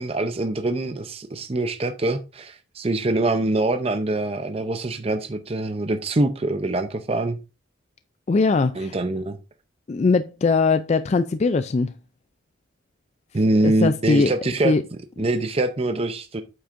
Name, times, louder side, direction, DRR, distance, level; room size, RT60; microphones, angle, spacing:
voice 1, 0.0-7.4 8.7-9.4 13.3-14.7 15.2-16.4, right 2 dB, 30° right, 0.6 m, -24 dB
voice 2, 8.3-9.0 9.9-11.9 13.6-14.3 14.6-14.8, left 4 dB, 35° left, 0.3 m, -20 dB
8.6 x 7.7 x 2.5 m
head